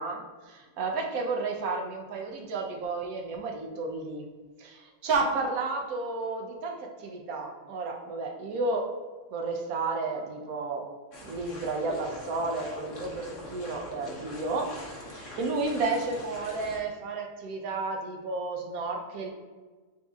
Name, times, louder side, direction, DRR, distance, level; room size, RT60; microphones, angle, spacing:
voice 1, 0.0-4.3 4.6-8.9 9.3-10.9 11.2-19.3, right 3 dB, 85° right, 2 dB, 1.1 m, -32 dB
sound 1, 11.1-16.8, left 1 dB, 65° left, 1.2 m, -43 dB
7.0 x 2.6 x 2.3 m, 1.3 s
omnidirectional pair, 1.5 m